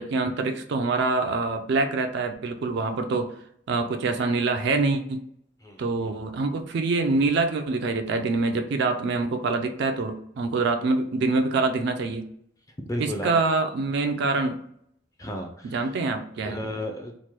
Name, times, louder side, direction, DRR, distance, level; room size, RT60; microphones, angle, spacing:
voice 1, 0.0-3.3 3.7-5.2 5.8-12.2 13.0-14.6 15.6-16.6, right 3 dB, 60° right, 7 dB, 0.4 m, -25 dB
voice 2, 5.6-6.1 12.8-13.3 15.2-15.9 16.4-17.2, equal, 20° left, 3 dB, 0.4 m, -33 dB
3.1 x 2.1 x 2.9 m, 0.68 s
head